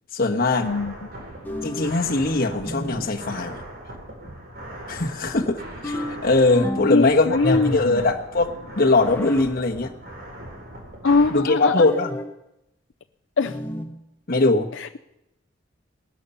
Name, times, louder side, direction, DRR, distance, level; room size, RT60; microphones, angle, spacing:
voice 1, 0.1-0.7 1.6-3.6 4.9-9.9 11.3-12.1 14.3-14.7, left 2 dB, 50° left, 2 dB, 1.4 m, -21 dB
voice 2, 0.6-1.0 6.9-8.1 11.0-11.9 13.4-13.6 14.7-15.0, left 3 dB, 65° left, 6 dB, 0.6 m, -22 dB
sound 1, 0.6-11.3, right 1 dB, 50° right, 3.7 m, -39 dB
sound 2, 1.5-2.0 2.7-3.2 5.8-7.0 7.4-8.1 9.0-9.5 11.8-12.4 13.5-14.0, left 1 dB, 10° left, 1.0 m, -31 dB
19.5 x 12.5 x 5.7 m, 0.88 s
head